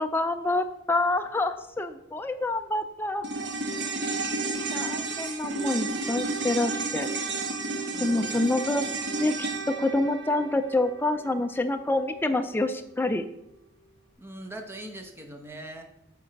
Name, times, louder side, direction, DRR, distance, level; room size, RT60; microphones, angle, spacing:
voice 1, 0.0-3.3 4.0-4.3 4.7-7.1 8.0-8.9 9.2-13.2, left 2 dB, 10° left, 7 dB, 0.3 m, -27 dB
sound 1, 3.2-11.7 12.0-12.1, right 3 dB, 60° right, 1.0 m, -32 dB
voice 2, 7.8-8.5 14.2-15.8, right 1 dB, 10° right, 5 dB, 0.8 m, -41 dB
8.3 x 4.3 x 5.2 m, 0.81 s
head